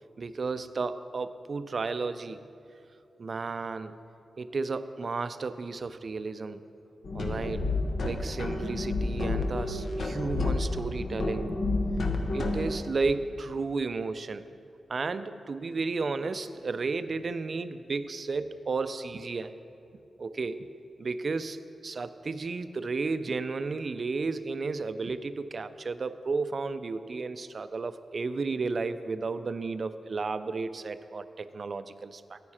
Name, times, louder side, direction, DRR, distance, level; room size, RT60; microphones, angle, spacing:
voice 1, 0.2-2.4 3.2-4.0 4.4-6.6 7.1-7.7 8.0-11.5 12.3-14.4 14.9-19.6 20.2-20.7 21.0-32.4, right 4 dB, 50° right, 12 dB, 0.4 m, -33 dB
sound 1, 7.0-12.7, left 2 dB, 65° left, 1.0 m, -30 dB
9.7 x 9.3 x 4.3 m, 2.6 s
cardioid pair, 70°, 0 cm